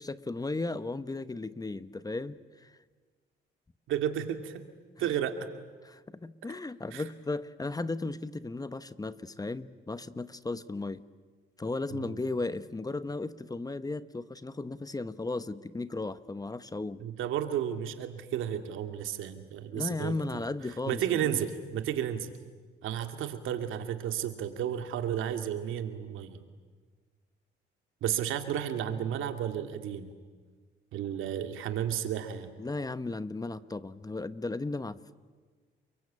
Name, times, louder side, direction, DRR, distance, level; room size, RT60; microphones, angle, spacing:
voice 1, 0.0-2.8 5.0-5.2 5.8-11.0 11.6-17.0 19.7-21.4 32.6-35.0, left 3 dB, 20° left, 14 dB, 1.0 m, -35 dB
voice 2, 3.9-4.6 5.0-5.3 6.9-7.0 11.9-12.2 17.0-20.4 20.9-22.3 22.8-26.4 28.0-30.1 30.9-32.5, right 10 dB, 85° right, 7 dB, 2.3 m, -32 dB
30.0 x 22.5 x 8.7 m, 1.5 s
cardioid pair, 90°, 20 cm